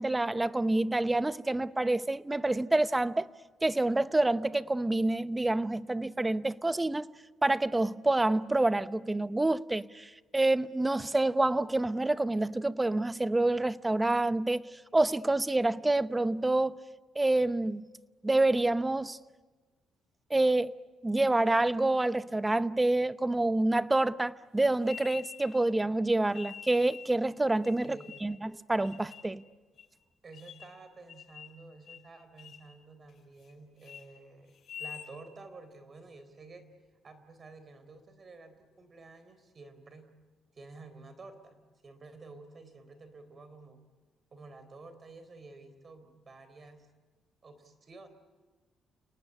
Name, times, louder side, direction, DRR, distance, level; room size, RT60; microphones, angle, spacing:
voice 1, 0.0-3.2 3.6-7.1 7.4-14.6 14.9-16.7 17.2-17.9 18.2-19.2 20.3-20.7 21.0-29.4, right 2 dB, 15° right, 0.8 m, -27 dB
sound 1, 24.8-25.7 26.3-27.1 27.6-28.4 28.8-29.3 29.8-29.9 30.3-30.8 31.1-31.6 31.9-32.1 32.4-32.7 33.1-33.5 33.8-34.0 34.5-35.1, left 9 dB, 65° left, 7.7 m, -47 dB
voice 2, 27.8-28.3 30.2-36.7 37.0-40.1 40.5-41.6 41.8-43.8 44.3-46.9 47.4-48.1, right 3 dB, 40° right, 3.8 m, -51 dB
30.0 x 19.0 x 9.5 m
cardioid pair, 90°, 0 cm